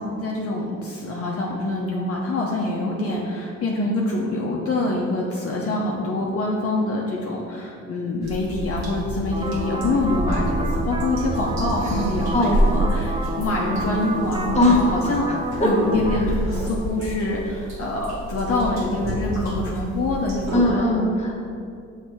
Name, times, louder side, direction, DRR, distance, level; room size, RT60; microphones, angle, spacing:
voice 1, 0.0-15.3 15.6-21.1, left 2 dB, 50° left, -2 dB, 0.8 m, -25 dB
sound 1, 8.2-20.6, right 1 dB, 60° right, 1.4 m, -28 dB
sound 2, 9.3-16.2, right 2 dB, 15° right, 0.5 m, -30 dB
voice 2, 14.5-15.7 20.5-21.4, left 1 dB, 20° left, -3 dB, 1.1 m, -20 dB
6.2 x 3.3 x 4.6 m, 2.4 s
cardioid pair, 90°, 30 cm